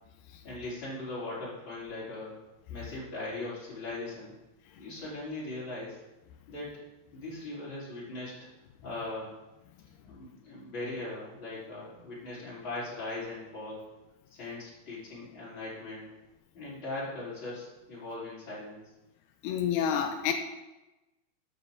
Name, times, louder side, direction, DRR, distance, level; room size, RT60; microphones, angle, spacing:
voice 1, 0.4-2.3 2.7-4.3 4.8-6.0 6.5-6.8 7.1-8.5 8.8-9.3 10.0-13.8 14.3-16.1 16.5-18.8, left 2 dB, 30° left, -8 dB, 5.0 m, -39 dB
voice 2, 19.4-20.3, left 8 dB, 90° left, 5 dB, 2.8 m, -28 dB
13.5 x 9.3 x 4.1 m, 1.0 s
omnidirectional pair, 4.5 m